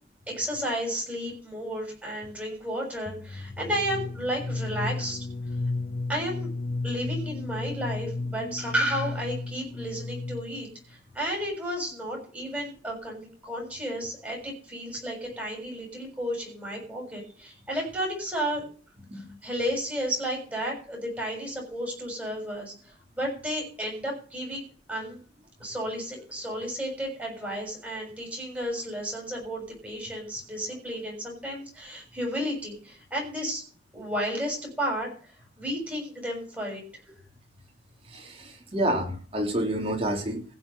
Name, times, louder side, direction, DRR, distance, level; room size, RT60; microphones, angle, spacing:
voice 1, 0.3-5.2 6.1-6.5 6.8-18.6 19.1-22.7 23.2-25.2 25.6-33.6 33.9-35.1 35.6-36.8, equal, 10° right, -1 dB, 6.7 m, -32 dB
sound 1, 3.1-10.7, left 3 dB, 35° left, 0.6 m, -34 dB
voice 2, 38.1-40.4, right 1 dB, 35° right, 1 dB, 3.1 m, -28 dB
16.0 x 6.9 x 6.8 m, 0.41 s
head